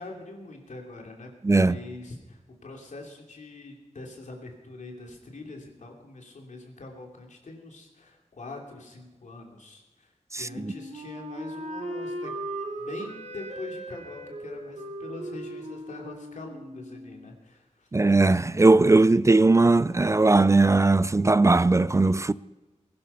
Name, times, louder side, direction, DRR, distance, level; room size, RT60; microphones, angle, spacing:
voice 1, 0.0-12.3 12.8-17.9, left 2 dB, 90° left, 2.9 m, -43 dB
voice 2, 1.4-1.8 10.3-10.7 17.9-22.3, right 3 dB, 25° right, 0.4 m, -19 dB
Wind instrument woodwind instrument, 10.5-17.3, right 1 dB, 70° right, 2.4 m, -38 dB
20.5 x 11.0 x 5.5 m
wide cardioid pair, 100°, 12 cm